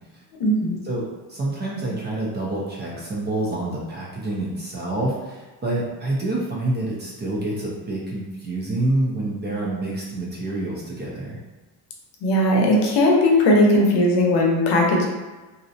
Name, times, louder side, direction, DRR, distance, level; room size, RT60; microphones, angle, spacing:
voice 1, 0.4-0.8 12.2-15.1, left 1 dB, 65° left, -1 dB, 0.7 m, -18 dB
voice 2, 1.3-11.4, right 1 dB, 25° right, -4 dB, 0.4 m, -27 dB
2.5 x 2.0 x 2.6 m, 1.2 s
cardioid pair, 140°, 43 cm